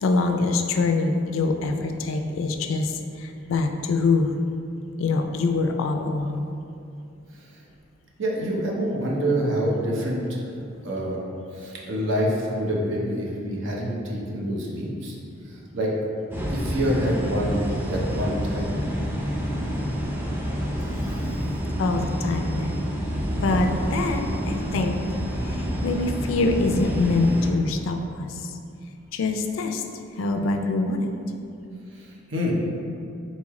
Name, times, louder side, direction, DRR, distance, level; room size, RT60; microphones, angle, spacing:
voice 1, 0.0-4.3 5.0-6.5 21.8-22.8 23.4-25.0 25.4-28.6 29.1-29.8 30.2-31.1, left 3 dB, 85° left, 5 dB, 0.4 m, -24 dB
voice 2, 8.2-10.4 10.8-11.2 11.5-15.2 15.5-15.9 16.5-18.8 31.9-32.5, equal, 70° right, -3 dB, 0.8 m, -26 dB
sound 1, 16.3-27.5, equal, 10° right, 0.5 m, -28 dB
4.1 x 3.1 x 3.6 m, 2.6 s
head